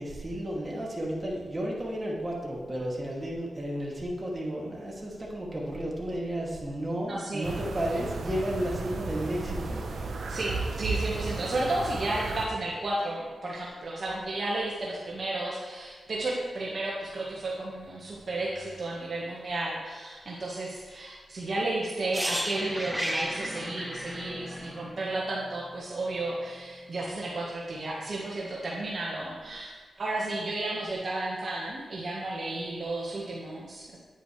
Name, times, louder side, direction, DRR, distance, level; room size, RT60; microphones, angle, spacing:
voice 1, 0.0-9.9, right 1 dB, 25° right, -3 dB, 2.5 m, -33 dB
voice 2, 7.1-7.5 10.3-34.0, right 2 dB, 55° right, -4 dB, 1.5 m, -33 dB
sound 1, 7.4-12.5, right 3 dB, 70° right, 1.1 m, -34 dB
sound 2, 22.1-26.0 26.2-26.4, equal, ahead, 0.9 m, -34 dB
9.4 x 9.0 x 3.3 m, 1.4 s
cardioid pair, 60°, 0 cm